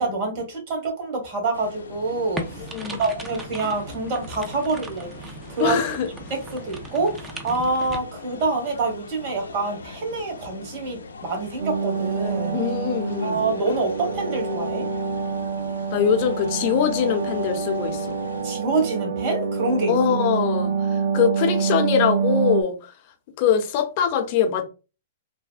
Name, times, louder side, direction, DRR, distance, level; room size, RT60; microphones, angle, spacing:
voice 1, 0.0-5.8 6.3-12.6 13.2-14.8 18.4-20.2, right 3 dB, 45° right, 1.4 m, -26 dB
sound 1, 1.5-18.5, left 4 dB, 90° left, 0.5 m, -42 dB
sound 2, 2.4-8.0, right 2 dB, 15° right, 0.5 m, -38 dB
voice 2, 2.7-3.1 5.6-6.1 12.5-13.4 15.9-18.2 19.9-22.9 23.4-24.6, left 8 dB, 45° left, 0.7 m, -23 dB
sound 3, 11.6-22.6, right 5 dB, 85° right, 0.4 m, -26 dB
3.3 x 2.0 x 2.5 m
hypercardioid pair, 130°, 0 cm